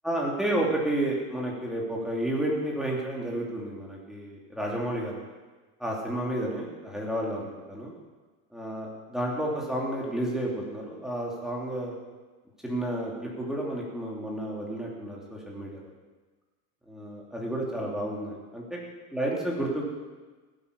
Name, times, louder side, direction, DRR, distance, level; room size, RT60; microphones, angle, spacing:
voice 1, 0.0-5.2 5.8-7.9 8.5-11.9 12.6-15.9 16.9-18.8 19.1-19.8, right 1 dB, ahead, -3 dB, 2.8 m, -31 dB
16.0 x 9.0 x 6.9 m, 1.3 s
cardioid pair, 150°, 41 cm